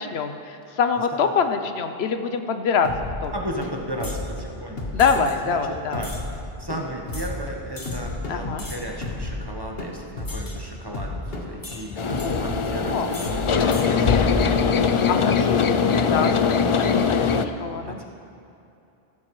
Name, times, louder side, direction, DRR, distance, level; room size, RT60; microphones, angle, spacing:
voice 1, 0.0-2.9 3.2-3.3 4.9-6.0 8.3-8.6 12.2-12.4 12.9-13.1 15.1-18.0, left 6 dB, 90° left, 8 dB, 1.0 m, -25 dB
voice 2, 0.6-1.2 3.3-4.9 5.4-6.1 6.6-14.5 15.2-15.8 17.8-18.0, right 1 dB, 25° right, 0 dB, 1.1 m, -35 dB
sound 1, 2.8-15.2, left 2 dB, 70° left, 1.7 m, -33 dB
sound 2, 4.0-4.3 5.0-5.4 6.0-6.2 7.1-7.3 7.8-8.0 8.6-9.0 10.3-10.6 11.6-12.3 13.1-13.4 13.7-13.9, left 2 dB, 20° left, 0.9 m, -39 dB
sound 3, 12.0-17.5, left 6 dB, 50° left, 0.4 m, -21 dB
15.5 x 13.0 x 3.2 m, 2.7 s
omnidirectional pair, 1.0 m